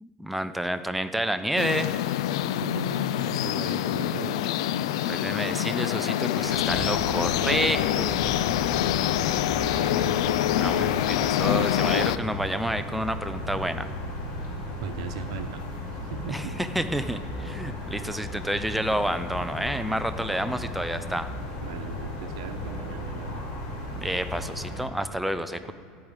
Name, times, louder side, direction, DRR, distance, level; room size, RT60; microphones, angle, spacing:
voice 1, 0.0-1.9 5.1-8.4 10.6-13.9 16.3-21.3 23.9-25.7, right 1 dB, ahead, 10 dB, 0.4 m, -29 dB
sound 1, 1.6-12.2, left 12 dB, 85° left, 0.3 m, -26 dB
voice 2, 2.5-4.5 9.3-11.1 14.8-15.6 15.9-16.5 21.6-23.5, right 7 dB, 85° right, 8 dB, 0.9 m, -38 dB
sound 2, 6.5-24.8, left 1 dB, 50° left, 3.4 m, -35 dB
13.5 x 4.8 x 8.9 m, 2.3 s
supercardioid pair, 160°, 3 cm